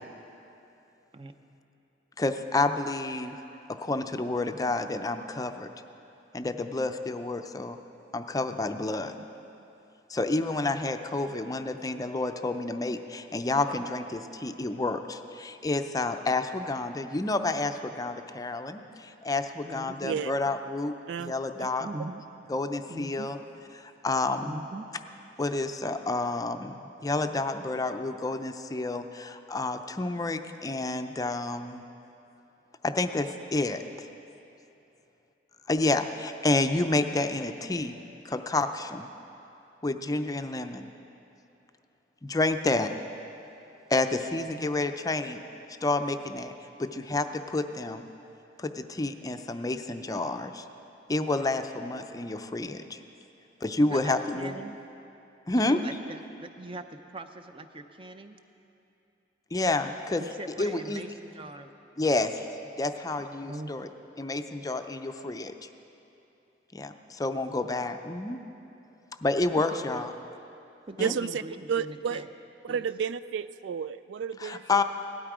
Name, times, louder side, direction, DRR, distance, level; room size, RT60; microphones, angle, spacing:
voice 1, 2.2-3.4 3.7-5.7 6.3-7.8 8.1-9.2 10.1-21.9 22.5-23.4 23.7-24.6 25.4-31.8 32.8-34.1 35.7-38.0 38.2-39.1 39.8-40.9 42.2-42.9 43.9-45.4 45.8-46.5 46.8-48.0 48.6-50.6 51.1-53.0 53.6-54.6 55.5-55.8 59.5-60.2 60.6-61.0 62.0-62.5 62.8-63.9 64.2-65.7 66.7-68.4 69.2-70.1 71.0-71.1 74.4-74.8, left 2 dB, 20° left, 7 dB, 0.5 m, -29 dB
voice 2, 19.6-20.2 21.8-22.2 22.9-23.3 24.4-24.9 53.9-54.8 55.5-58.4 60.2-61.7 63.5-63.7 69.7-70.1 70.9-72.3 72.7-72.9, right 2 dB, 30° right, 8 dB, 0.7 m, -41 dB
voice 3, 71.0-71.4 71.7-72.2 72.6-74.6, right 7 dB, 80° right, 15 dB, 0.3 m, -31 dB
17.5 x 12.5 x 4.9 m, 2.8 s
head